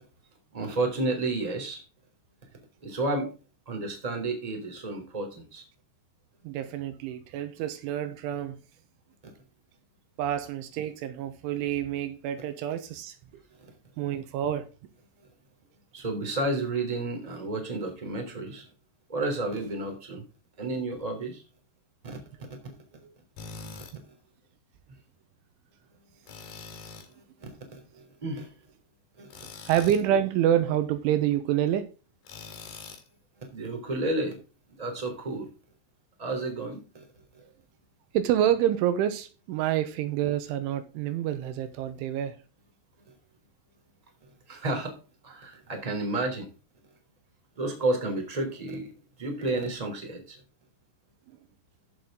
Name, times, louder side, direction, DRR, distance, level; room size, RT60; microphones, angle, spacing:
voice 1, 0.5-1.8 2.8-3.3 3.7-5.6 9.2-9.3 15.9-18.7 19.1-20.2 20.6-21.4 22.0-22.2 27.4-28.5 29.2-29.3 33.5-34.4 34.8-35.5 36.2-37.1 44.5-44.9 45.2-46.5 47.6-48.9 49.2-50.4, right 2 dB, 10° right, 2.7 m, -31 dB
voice 2, 6.4-8.6 10.2-13.2 14.0-14.7 23.0-23.1 29.7-31.9 38.1-42.4, right 11 dB, 80° right, 3.4 m, -27 dB
Tools, 23.4-24.0 26.3-27.1 29.3-30.1 32.2-33.1, left 4 dB, 60° left, 4.4 m, -43 dB
15.0 x 6.2 x 3.8 m
omnidirectional pair, 5.6 m